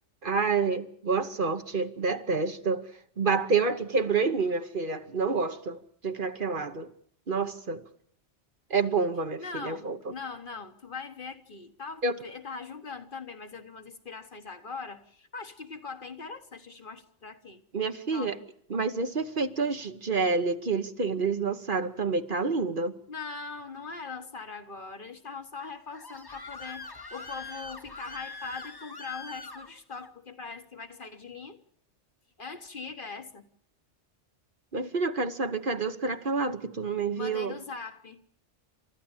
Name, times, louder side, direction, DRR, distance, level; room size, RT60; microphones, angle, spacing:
voice 1, 0.2-2.9 3.2-6.9 7.3-7.8 8.7-10.0 12.0-12.1 17.7-18.3 18.7-22.9 34.7-37.6, right 4 dB, 50° right, 1.2 m, -28 dB
voice 2, 9.4-17.6 18.1-18.4 23.1-31.6 32.4-33.4 37.2-38.2, left 4 dB, 50° left, 1.5 m, -41 dB
Screaming, 25.6-30.1, left 3 dB, 20° left, 1.0 m, -43 dB
29.5 x 13.5 x 8.9 m
omnidirectional pair, 1.2 m